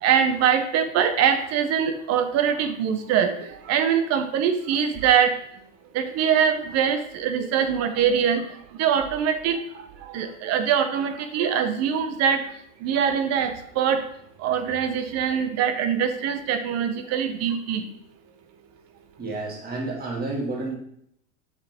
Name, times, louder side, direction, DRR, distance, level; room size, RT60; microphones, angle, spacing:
voice 1, 0.0-5.3 5.9-8.4 8.8-9.6 10.0-12.4 12.8-14.0 14.4-17.9, right 8 dB, 40° right, 8 dB, 0.8 m, -23 dB
voice 2, 19.2-20.8, right 2 dB, 20° right, -2 dB, 2.1 m, -30 dB
6.4 x 6.0 x 3.5 m, 0.72 s
hypercardioid pair, 115°, 41 cm